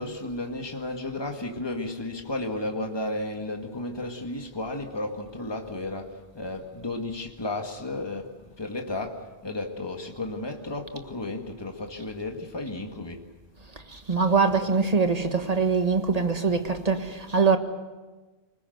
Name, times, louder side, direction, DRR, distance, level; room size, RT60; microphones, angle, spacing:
voice 1, 0.0-8.3 8.6-13.2, left 2 dB, 25° left, 1.9 m, -33 dB
voice 2, 13.7-17.6, right 5 dB, 35° right, 1.6 m, -23 dB
25.0 x 20.0 x 7.9 m
omnidirectional pair, 1.1 m